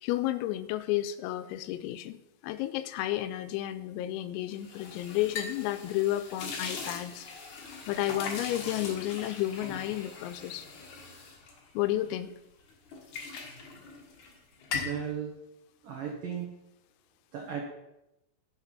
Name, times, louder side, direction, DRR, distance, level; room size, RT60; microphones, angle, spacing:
voice 1, 0.0-2.2 2.4-7.3 7.9-10.7 11.7-12.3, left 14 dB, 90° left, 11 dB, 3.3 m, -32 dB
sound 1, 4.5-12.3 12.7-14.4 14.6-15.0, left 5 dB, 65° left, 2.0 m, -40 dB
voice 2, 14.7-15.3 15.8-16.5 17.3-17.6, right 8 dB, 80° right, 0 dB, 1.9 m, -35 dB
11.0 x 6.8 x 5.7 m, 0.90 s
omnidirectional pair, 6.0 m